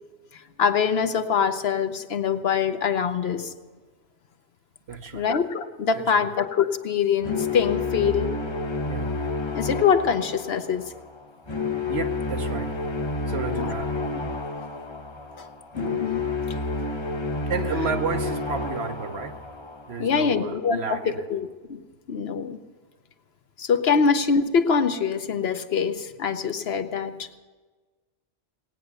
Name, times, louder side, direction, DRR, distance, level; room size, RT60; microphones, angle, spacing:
voice 1, 0.3-3.5 5.1-8.3 9.5-10.9 13.6-14.1 15.4-15.5 15.8-16.2 20.0-22.6 23.6-27.3, left 6 dB, 60° left, 9 dB, 1.0 m, -24 dB
voice 2, 4.9-5.3 6.0-6.3 8.9-9.2 11.9-12.8 13.3-14.0 17.5-19.4 19.9-21.3, right 5 dB, 65° right, 7 dB, 1.1 m, -32 dB
sound 1, 7.2-20.3, left 3 dB, 25° left, 0.8 m, -30 dB
19.0 x 9.2 x 6.7 m, 1.3 s
omnidirectional pair, 1.2 m